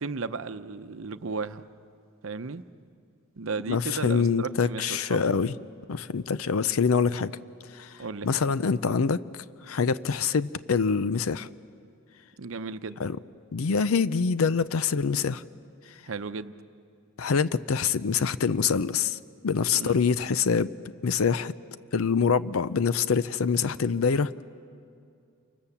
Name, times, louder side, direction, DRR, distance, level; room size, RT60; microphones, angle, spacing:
voice 1, 0.0-1.6 2.2-2.6 3.4-5.2 8.0-8.4 12.4-13.0 16.0-16.5 19.7-20.1, right 4 dB, 70° right, 11 dB, 0.8 m, -34 dB
voice 2, 3.7-5.5 5.9-7.4 7.7-7.9 8.2-11.5 13.0-13.2 13.5-15.4 17.2-19.2 19.4-20.7 21.0-21.5 21.9-24.3, left 5 dB, 90° left, 15 dB, 0.5 m, -25 dB
29.0 x 24.5 x 7.2 m, 2.4 s
head